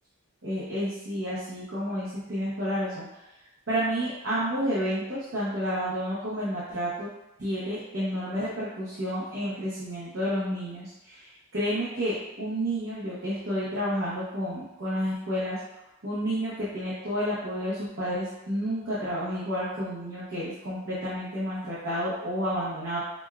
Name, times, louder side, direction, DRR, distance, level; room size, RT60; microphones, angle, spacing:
voice 1, 0.4-3.2 3.7-7.1 7.4-15.6 16.0-23.0, equal, 65° right, -9 dB, 0.8 m, -30 dB
5.0 x 2.2 x 2.3 m, 0.95 s
head